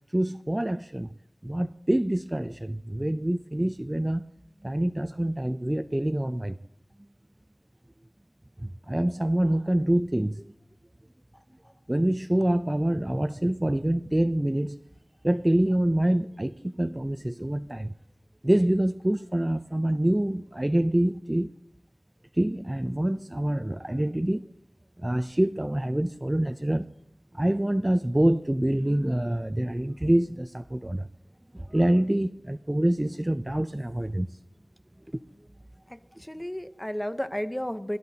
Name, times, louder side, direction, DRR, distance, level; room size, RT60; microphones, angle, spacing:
voice 1, 0.1-1.1 1.4-4.3 4.6-6.6 8.6-10.5 11.9-14.8 15.2-17.9 18.4-21.5 22.4-24.4 25.0-26.8 27.3-31.1 31.5-34.3, right 1 dB, 20° right, 0.4 m, -26 dB
voice 2, 35.9-38.0, equal, 15° left, 0.8 m, -33 dB
21.0 x 12.5 x 2.8 m
wide cardioid pair, 45°, 0 cm